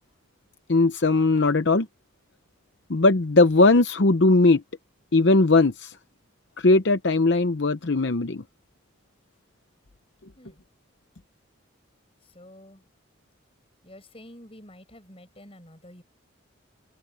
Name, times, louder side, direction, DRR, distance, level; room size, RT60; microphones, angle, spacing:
voice 1, 0.7-1.9 2.9-4.6 5.1-6.0 6.6-8.4, left 2 dB, 55° left, 0.8 m, -19 dB
voice 2, 12.2-12.8 13.8-16.0, left 1 dB, 30° left, 7.1 m, -48 dB
head